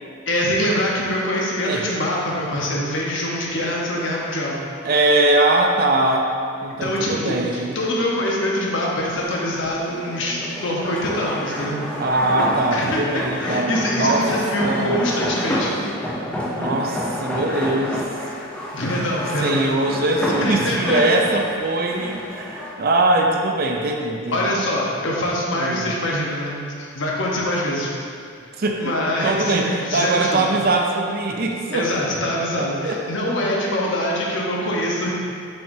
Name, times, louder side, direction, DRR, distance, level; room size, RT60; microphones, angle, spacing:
voice 1, 0.3-4.6 6.8-11.8 12.7-15.7 18.7-19.7 20.4-21.0 24.3-26.6 26.9-27.9 28.8-30.5 31.7-35.2, left 1 dB, 60° left, -3 dB, 1.0 m, -24 dB
voice 2, 4.8-6.3 6.6-7.8 12.0-14.3 14.6-15.0 16.6-18.1 19.4-24.5 25.5-25.9 28.5-28.9 29.2-31.9 32.6-33.0, right 2 dB, 45° right, 2 dB, 0.5 m, -21 dB
sound 1, 9.0-22.7, left 1 dB, 5° left, 0.5 m, -29 dB
7.0 x 5.6 x 2.7 m, 2.4 s
head